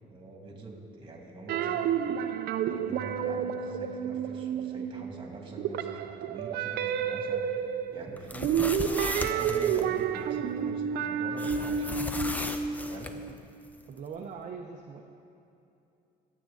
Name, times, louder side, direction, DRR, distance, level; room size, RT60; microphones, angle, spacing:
voice 1, 0.1-2.2 2.6-12.2 12.9-13.2, right 3 dB, 30° right, 1 dB, 2.4 m, -44 dB
sound 1, 1.5-5.2 5.5-13.3, right 7 dB, 70° right, 0.6 m, -30 dB
sound 2, 8.2-9.8 11.4-13.1, left 2 dB, 10° left, 0.7 m, -36 dB
voice 2, 13.9-15.0, right 5 dB, 45° right, 2 dB, 0.8 m, -41 dB
21.5 x 8.5 x 3.9 m, 2.7 s
cardioid pair, 110°, 17 cm